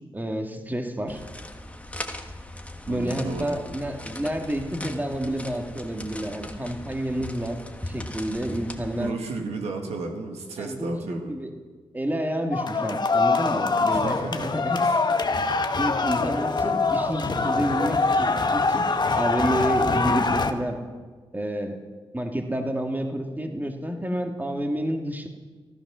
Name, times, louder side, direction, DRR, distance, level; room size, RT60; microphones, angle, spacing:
voice 1, 0.1-1.2 2.9-9.1 10.6-11.5 11.9-14.8 15.8-20.8 21.3-21.8 22.1-25.3, right 1 dB, 15° right, 4 dB, 2.0 m, -29 dB
sound 1, 1.1-9.1, left 1 dB, 10° left, 1.4 m, -39 dB
voice 2, 2.9-3.6 9.0-11.4 13.9-14.5 14.8-15.1, right 3 dB, 80° right, 2 dB, 1.9 m, -34 dB
sound 2, 12.5-20.5, left 3 dB, 45° left, 1.2 m, -24 dB
14.5 x 13.0 x 6.2 m, 1.4 s
cardioid pair, 50°, 11 cm